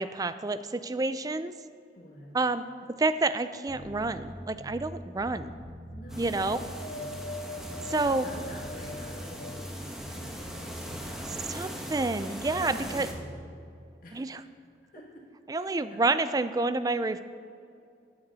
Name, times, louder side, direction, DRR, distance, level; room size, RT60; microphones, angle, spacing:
voice 1, 0.0-1.5 2.3-5.6 6.2-6.6 7.9-8.3 11.5-13.1 14.1-14.4 15.5-17.2, right 3 dB, 20° right, 12 dB, 0.4 m, -29 dB
voice 2, 1.9-2.3 5.9-7.0 8.0-11.7 12.5-13.3 14.0-14.4 14.8-15.3 15.5-16.0, equal, 55° left, -3 dB, 2.4 m, -47 dB
Bass guitar, 3.7-4.9 5.2-7.3 7.6-9.7 10.0-12.1 12.4-13.3, equal, 90° right, 1.8 m, -44 dB
sound 1, 6.1-13.1, equal, 5° right, 1.2 m, -41 dB
Wind, 6.4-9.9 10.5-11.5 12.3-12.4, left 2 dB, 80° left, 1.1 m, -43 dB
14.0 x 9.6 x 4.1 m, 2.4 s
head